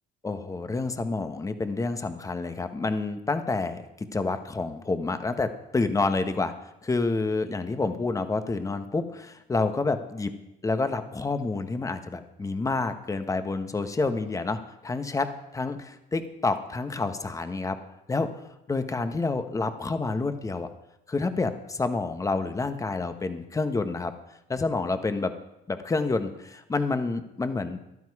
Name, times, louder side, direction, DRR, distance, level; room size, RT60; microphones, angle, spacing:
voice 1, 0.2-6.5 6.8-10.4 10.6-14.6 14.8-15.3 15.5-17.8 18.1-18.3 18.7-20.7 21.1-24.1 24.5-25.3 25.7-27.8, left 3 dB, 20° left, 9 dB, 1.2 m, -28 dB
14.5 x 12.0 x 4.8 m, 0.89 s
cardioid pair, 110°, 17 cm